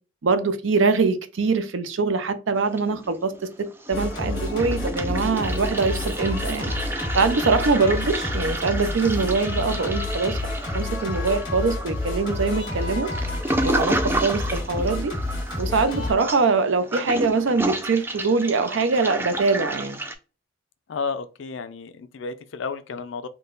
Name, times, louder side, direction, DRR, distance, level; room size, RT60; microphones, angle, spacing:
voice 1, 0.2-3.3 3.9-6.9 7.1-10.4 10.7-13.1 13.6-15.1 15.6-20.0, right 4 dB, 80° right, 0.5 m, -23 dB
Toilet flush, 2.5-3.4 3.7-20.1, right 1 dB, 10° right, 0.3 m, -31 dB
Singing, 3.9-16.1, left 2 dB, 20° left, 1.7 m, -29 dB
voice 2, 9.6-9.9 20.9-23.3, left 5 dB, 75° left, 0.5 m, -32 dB
3.7 x 2.2 x 3.8 m
head